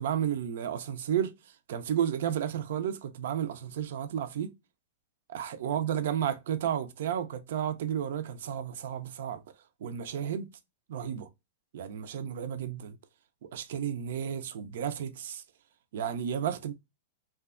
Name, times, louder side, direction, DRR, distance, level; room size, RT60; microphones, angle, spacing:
voice 1, 0.0-1.3 1.7-4.5 5.3-9.4 9.8-10.5 10.9-11.3 11.7-13.0 13.4-15.4 15.9-16.7, right 9 dB, 70° right, 0.4 m, -32 dB
2.6 x 2.2 x 2.3 m
hypercardioid pair, 130°, 0 cm